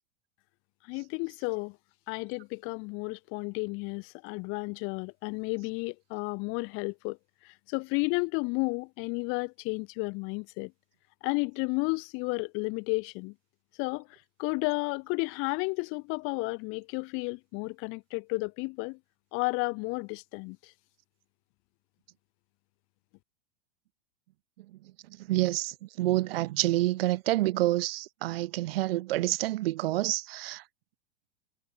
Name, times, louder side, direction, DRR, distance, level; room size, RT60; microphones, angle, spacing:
voice 1, 0.8-1.8 2.1-7.2 7.4-10.7 11.2-13.3 13.8-14.1 14.4-19.0 19.3-20.7, left 30 dB, 45° left, 0.6 m, -32 dB
voice 2, 25.2-30.6, right 17 dB, 75° right, 0.5 m, -28 dB
hypercardioid pair, 105°, 30 cm